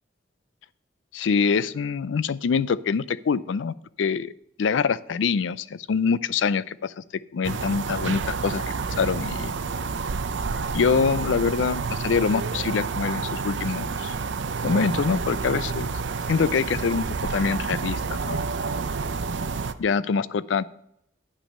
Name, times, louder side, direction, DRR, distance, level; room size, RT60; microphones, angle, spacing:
voice 1, 1.1-4.3 4.6-7.0 7.3-9.5 10.7-14.2 14.6-15.9 16.3-18.4 19.8-20.7, left 5 dB, 80° left, 18 dB, 0.4 m, -25 dB
sound 1, 7.4-19.7, right 4 dB, 70° right, 0.5 m, -29 dB
9.9 x 6.1 x 5.3 m, 0.75 s
head